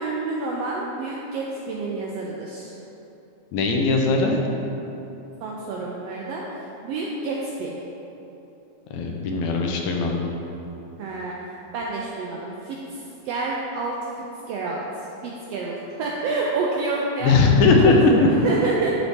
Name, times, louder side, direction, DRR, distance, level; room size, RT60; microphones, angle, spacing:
voice 1, 0.0-2.7 5.4-7.7 11.0-11.4 11.7-17.4 17.8-18.0 18.4-18.9, right 3 dB, 85° right, -3 dB, 1.4 m, -29 dB
voice 2, 3.5-4.4 8.9-10.2 17.2-18.3, left 3 dB, 80° left, 1 dB, 2.0 m, -18 dB
11.0 x 4.1 x 3.4 m, 2.9 s
omnidirectional pair, 3.4 m